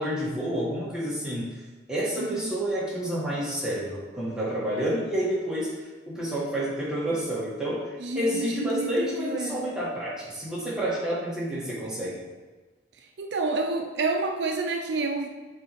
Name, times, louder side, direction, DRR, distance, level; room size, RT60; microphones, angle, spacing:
voice 1, 0.0-1.5 1.9-5.7 6.1-7.9 8.1-12.2, equal, 5° right, -8 dB, 1.7 m, -29 dB
voice 2, 2.2-2.5 8.0-9.7 13.2-15.3, right 3 dB, 75° right, 4 dB, 0.5 m, -29 dB
7.4 x 4.0 x 3.2 m, 1.3 s
head